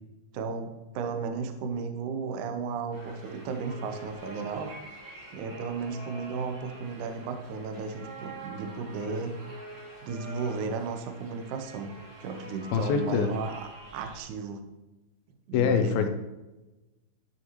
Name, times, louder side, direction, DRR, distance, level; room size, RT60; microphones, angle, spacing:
voice 1, 0.3-4.7 5.3-9.3 10.0-11.9 12.2-13.5 13.9-14.6 15.5-16.1, right 5 dB, 80° right, 6 dB, 1.8 m, -34 dB
sound 1, 2.9-14.2, right 1 dB, 35° right, 2.6 m, -46 dB
voice 2, 12.7-13.3 15.5-16.1, left 7 dB, 80° left, 7 dB, 2.2 m, -24 dB
12.5 x 6.6 x 3.1 m, 1.1 s
omnidirectional pair, 4.8 m